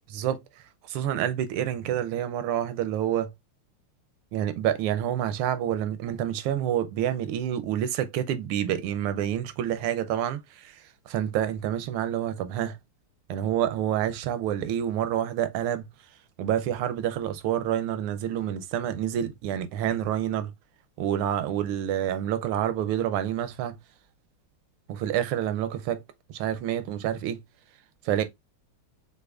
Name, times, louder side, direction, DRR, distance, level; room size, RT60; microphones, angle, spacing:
voice 1, 0.1-0.4 0.9-3.3 4.3-10.7 11.1-12.8 13.3-15.9 16.4-20.5 21.0-23.8 24.9-26.0 26.3-27.4 28.1-28.2, right 10 dB, 85° right, 1.5 m, -28 dB
6.4 x 2.7 x 2.4 m
omnidirectional pair, 2.3 m